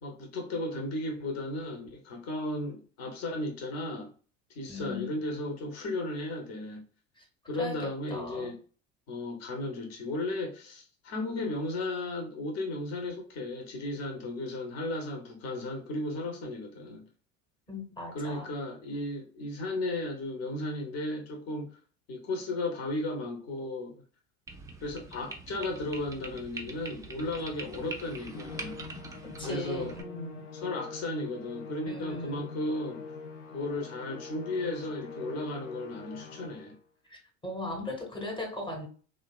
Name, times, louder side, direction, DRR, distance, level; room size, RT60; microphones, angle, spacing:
voice 1, 0.0-4.1 4.5-6.8 7.5-8.6 9.1-17.0 18.1-21.7 22.1-24.0 24.8-28.8 29.4-29.9 30.5-33.0 33.5-36.8, left 2 dB, 45° left, 0.9 m, -35 dB
voice 2, 4.7-5.1 7.2-7.3 7.6-8.5 17.7-18.5 29.4-30.5 31.9-32.5 37.1-38.9, left 1 dB, 15° left, 0.9 m, -38 dB
sound 1, 24.5-30.0, right 3 dB, 10° right, 0.3 m, -44 dB
Musical instrument, 28.3-36.8, left 4 dB, 85° left, 0.5 m, -44 dB
2.7 x 2.2 x 2.3 m
hypercardioid pair, 70°, 37 cm